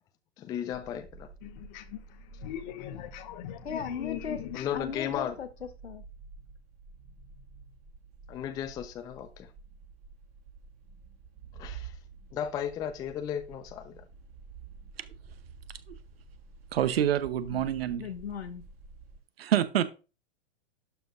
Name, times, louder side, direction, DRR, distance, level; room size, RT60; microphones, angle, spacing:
voice 1, 0.4-1.3 4.5-5.4 8.3-9.5 11.6-11.9 12.3-14.0, left 9 dB, 10° left, 0.3 m, -35 dB
sound 1, 0.7-19.2, right 5 dB, 45° right, 2.2 m, -50 dB
voice 2, 1.4-4.8, left 13 dB, 45° left, 1.0 m, -40 dB
voice 3, 3.6-4.4 4.7-6.0 17.5-17.6 18.0-18.6, left 7 dB, 85° left, 1.1 m, -37 dB
voice 4, 16.7-18.1 19.4-19.9, right 10 dB, 65° right, 0.9 m, -27 dB
11.5 x 5.2 x 2.5 m
hypercardioid pair, 115°, 32 cm